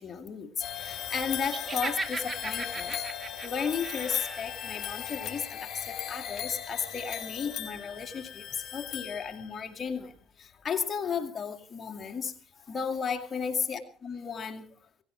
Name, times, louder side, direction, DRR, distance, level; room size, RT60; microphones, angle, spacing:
voice 1, 0.0-8.5 8.7-10.1 10.4-12.3 12.7-14.7, left 6 dB, 40° left, 3 dB, 2.3 m, -34 dB
sound 1, 0.6-9.7, left 9 dB, 55° left, 4.4 m, -38 dB
Laughter, 1.5-4.5, right 3 dB, 30° right, 2.3 m, -37 dB
18.0 x 16.0 x 4.5 m, 0.42 s
supercardioid pair, 85°, 0 cm